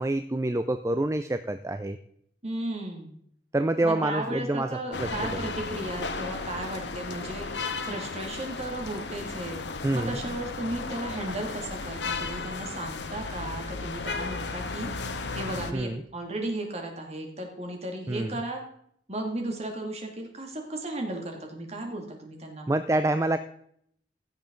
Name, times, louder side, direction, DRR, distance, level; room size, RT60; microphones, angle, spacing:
voice 1, 0.0-2.0 3.5-4.7 5.0-5.1 9.8-10.2 15.7-16.0 18.1-18.3 22.7-23.4, right 2 dB, 15° right, 10 dB, 0.4 m, -26 dB
voice 2, 2.4-3.1 3.8-14.9 15.3-18.6 19.1-22.8, right 1 dB, 40° right, 2 dB, 2.3 m, -35 dB
sound 1, 4.9-15.7, left 4 dB, 90° left, 1.0 m, -35 dB
16.0 x 7.2 x 3.8 m, 0.67 s
head